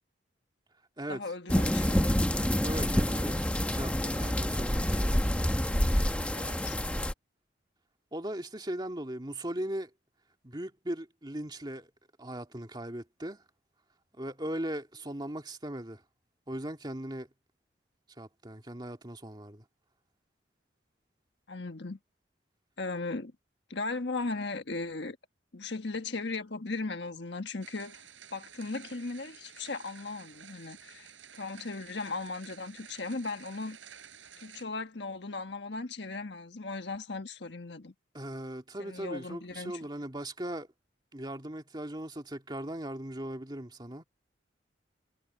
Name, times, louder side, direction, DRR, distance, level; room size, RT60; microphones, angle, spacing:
voice 1, 1.1-2.1 6.3-6.8 21.5-22.0 22.8-23.3 23.7-25.2 25.5-28.0 28.3-33.8 34.4-37.9 38.8-39.9, left 3 dB, 65° left, 1.4 m, -37 dB
sound 1, 1.5-7.1, equal, 5° left, 1.0 m, -27 dB
voice 2, 2.6-5.2 8.1-9.9 10.4-11.9 12.2-13.4 14.2-16.0 16.5-17.3 18.2-19.6 38.1-40.7 41.1-44.0, right 1 dB, 25° right, 2.4 m, -38 dB
sound 2, 27.6-34.6, right 8 dB, 85° right, 7.5 m, -52 dB
head